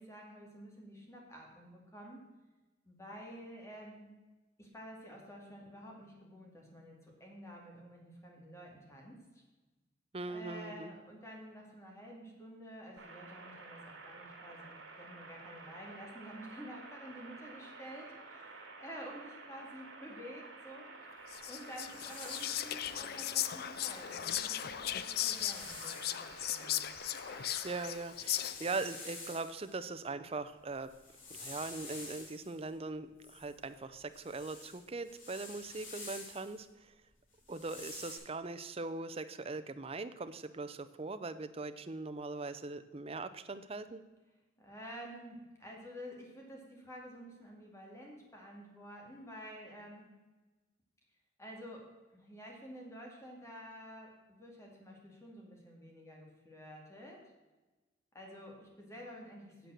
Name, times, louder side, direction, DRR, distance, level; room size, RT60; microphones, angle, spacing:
voice 1, 0.0-2.2 2.8-4.1 4.6-9.2 10.2-26.0 26.5-26.9 44.6-50.1 51.4-57.2 58.1-59.7, equal, 15° left, -1 dB, 2.3 m, -50 dB
voice 2, 10.1-10.9 27.6-30.9 31.3-36.9 37.5-44.0, right 3 dB, 30° right, 11 dB, 0.6 m, -41 dB
sound 1, 13.0-28.0, right 3 dB, 80° right, 2.5 m, -51 dB
Whispering, 21.3-28.8, left 12 dB, 50° left, 0.4 m, -37 dB
sound 2, 21.4-22.9 24.3-24.4 24.7-26.2 26.7-29.7 30.7-32.6 33.2-36.6 37.3-38.2, left 3 dB, 85° left, 4.1 m, -49 dB
9.3 x 7.5 x 6.5 m, 1.2 s
head